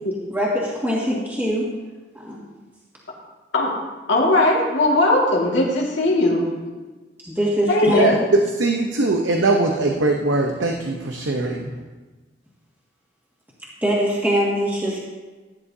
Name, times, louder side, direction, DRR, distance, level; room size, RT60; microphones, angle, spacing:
voice 1, 0.3-1.7 2.1-2.4 7.2-8.0 13.8-15.0, equal, 10° right, -6 dB, 1.9 m, -22 dB
voice 2, 4.1-6.5 7.7-8.2, left 2 dB, 80° left, -4 dB, 2.1 m, -18 dB
voice 3, 8.0-11.7, right 2 dB, 85° right, 2 dB, 0.9 m, -21 dB
16.0 x 9.9 x 2.8 m, 1.3 s
head